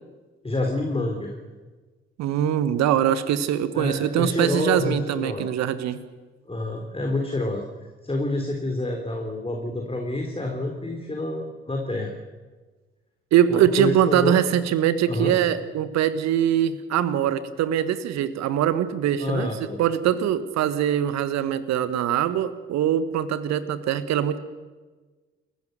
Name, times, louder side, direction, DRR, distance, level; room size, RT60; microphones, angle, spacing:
voice 1, 0.4-1.4 3.7-5.5 6.5-7.6 8.0-12.1 13.5-14.4 15.1-15.3 19.2-19.8, left 2 dB, 20° left, 2 dB, 3.9 m, -28 dB
voice 2, 2.2-6.0 13.3-19.5 19.8-24.4, right 10 dB, 60° right, 14 dB, 1.5 m, -22 dB
29.0 x 16.0 x 7.0 m, 1.3 s
figure-of-eight pair, 45°, 31 cm